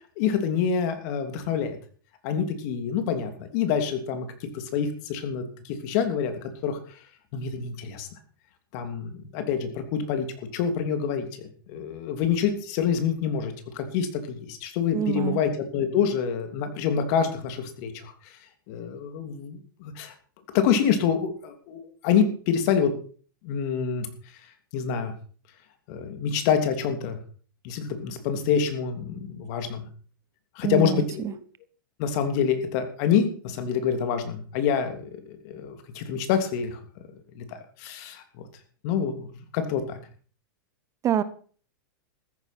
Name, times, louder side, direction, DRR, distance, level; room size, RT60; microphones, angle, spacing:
voice 1, 0.2-1.8 2.2-4.3 4.5-6.8 7.3-8.1 8.7-10.3 10.5-18.1 18.7-20.1 20.5-22.9 23.4-24.1 24.7-25.1 25.9-27.2 27.6-29.9 30.6-31.4 32.0-36.8 37.3-37.4 37.8-38.2 38.8-40.0, left 7 dB, 55° left, 8 dB, 3.0 m, -26 dB
voice 2, 14.9-15.4 30.6-31.3 41.0-41.2, right 10 dB, 30° right, 15 dB, 1.0 m, -26 dB
14.0 x 9.6 x 6.0 m, 0.43 s
hypercardioid pair, 120°, 11 cm